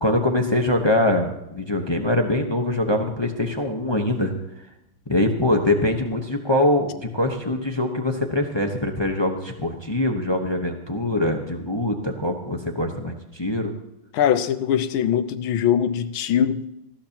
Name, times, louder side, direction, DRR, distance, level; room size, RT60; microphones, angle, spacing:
voice 1, 0.0-4.3 5.1-13.7, left 1 dB, 25° left, 3 dB, 0.6 m, -23 dB
voice 2, 14.1-16.7, left 9 dB, 85° left, 11 dB, 1.6 m, -22 dB
19.0 x 15.0 x 2.9 m, 0.87 s
omnidirectional pair, 2.2 m